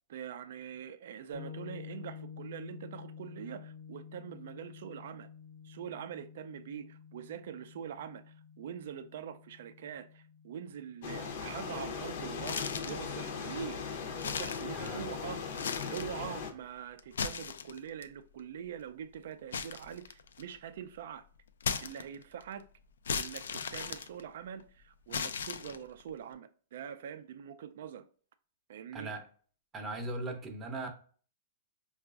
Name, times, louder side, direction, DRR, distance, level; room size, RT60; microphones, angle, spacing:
voice 1, 0.1-5.3 5.6-13.8 14.2-15.5 15.9-21.2 21.8-22.6 23.1-28.1 28.7-29.1, right 8 dB, 65° right, 0.3 m, -44 dB
sound 1, 1.3-11.0, left 7 dB, 70° left, 0.9 m, -50 dB
sound 2, 11.0-16.5, left 6 dB, 50° left, 0.6 m, -39 dB
sound 3, 12.4-13.1 13.6-13.7 14.1-15.1 15.5-16.2 17.0-18.0 19.5-20.6 21.6-22.4 23.1-24.6 25.1-26.0, left 6 dB, 90° left, 0.3 m, -37 dB
voice 2, 14.7-15.0 28.9-29.3 29.7-30.9, right 2 dB, 15° right, 0.6 m, -38 dB
4.5 x 2.3 x 2.4 m
hypercardioid pair, 150°, 0 cm